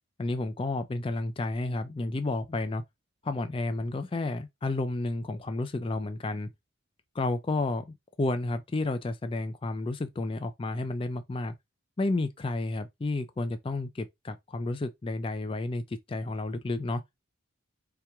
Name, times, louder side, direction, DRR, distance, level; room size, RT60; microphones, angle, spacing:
voice 1, 0.2-2.8 3.2-6.5 7.1-7.8 8.2-11.5 12.0-17.0, left 2 dB, 25° left, 0.4 m, -31 dB
3.3 x 3.0 x 4.6 m
head